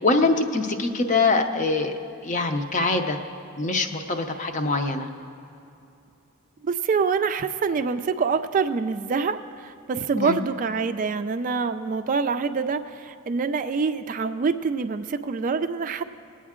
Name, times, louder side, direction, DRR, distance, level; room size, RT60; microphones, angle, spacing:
voice 1, 0.0-1.9 2.2-3.2 3.6-5.1 10.2-10.4, left 3 dB, 35° left, 5 dB, 0.7 m, -23 dB
voice 2, 6.6-16.0, right 5 dB, 40° right, 9 dB, 0.3 m, -25 dB
20.0 x 8.6 x 3.7 m, 2.8 s
head